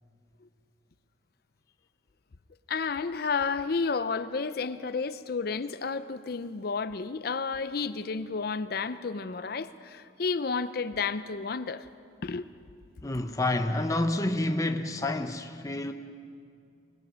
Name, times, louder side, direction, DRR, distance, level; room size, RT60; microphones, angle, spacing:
voice 1, 2.7-11.9 12.2-12.5, left 4 dB, 55° left, 0.5 m, -31 dB
voice 2, 13.0-15.9, left 2 dB, 20° left, 0.7 m, -28 dB
24.5 x 20.0 x 6.2 m
head